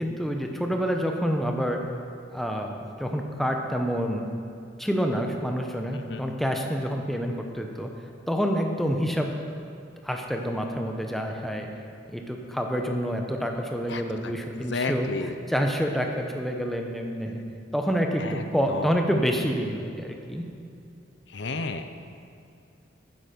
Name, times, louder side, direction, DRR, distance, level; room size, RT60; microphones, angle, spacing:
voice 1, 0.0-1.8 2.3-4.3 4.8-7.9 8.3-9.3 10.0-11.7 12.1-17.4 17.7-20.4, equal, ahead, 2 dB, 0.8 m, -28 dB
voice 2, 13.9-14.3 14.6-15.4 18.2-18.9 21.3-21.8, left 3 dB, 65° left, 8 dB, 0.6 m, -32 dB
12.0 x 10.0 x 5.2 m, 2.5 s
head